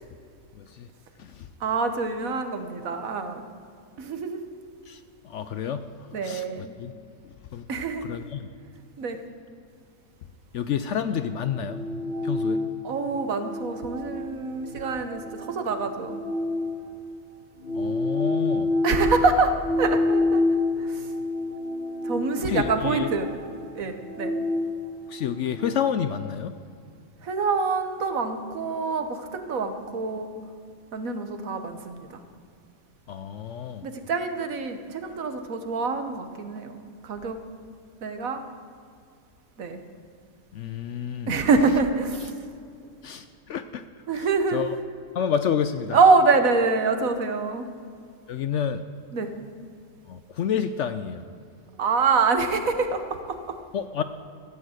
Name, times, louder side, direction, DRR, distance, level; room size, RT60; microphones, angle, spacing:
voice 1, 0.6-0.9 1.2-1.5 4.9-5.0 5.2-5.9 6.2-6.9 7.5-7.7 8.0-8.5 10.5-11.8 12.2-12.6 17.7-18.7 22.4-23.1 25.1-26.5 33.1-33.9 40.5-41.3 43.0-43.8 44.1-44.3 44.5-44.7 45.1-46.0 48.3-48.8 50.1-51.2 53.7-54.0, left 8 dB, 65° left, 11 dB, 0.8 m, -29 dB
voice 2, 1.6-3.4 4.0-4.4 6.1-6.7 7.7-8.1 9.0-9.2 12.8-16.2 18.8-19.5 19.8-20.4 20.8-21.1 22.0-23.3 23.7-24.3 27.2-30.3 30.9-32.2 33.8-36.8 37.0-37.4 38.0-38.4 39.6-39.8 41.3-42.3 44.1-44.6 45.9-47.7 49.1-49.3 51.8-53.4, right 4 dB, 65° right, 8 dB, 1.5 m, -25 dB
sound 1, 11.3-17.1 17.6-25.7, left 2 dB, 40° left, 2.2 m, -29 dB
14.0 x 8.7 x 8.0 m, 2.3 s
omnidirectional pair, 1.6 m